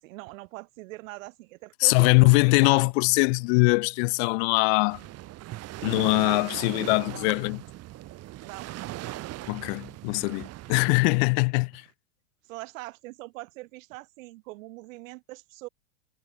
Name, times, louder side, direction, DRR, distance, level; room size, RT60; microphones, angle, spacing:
voice 1, 0.0-2.9 6.2-6.4 7.0-7.3 8.4-8.7 12.4-15.7, right 21 dB, 55° right, 7.7 m, -42 dB
voice 2, 1.8-5.0 5.8-7.6 9.5-11.8, left 32 dB, 40° left, 1.1 m, -22 dB
Waves surf, 4.9-11.2, right 16 dB, 30° right, 6.4 m, -39 dB
supercardioid pair, 150°, 46 cm